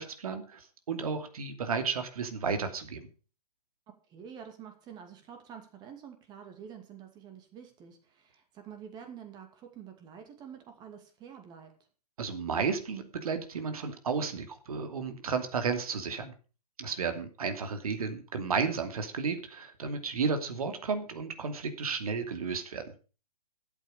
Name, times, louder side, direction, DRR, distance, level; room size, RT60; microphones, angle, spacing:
voice 1, 0.0-3.1 12.2-16.3 16.8-22.9, right 5 dB, 65° right, 7 dB, 2.7 m, -33 dB
voice 2, 4.1-11.7, right 8 dB, 20° right, 6 dB, 2.4 m, -48 dB
12.5 x 8.5 x 6.6 m, 0.36 s
hypercardioid pair, 140°, 20 cm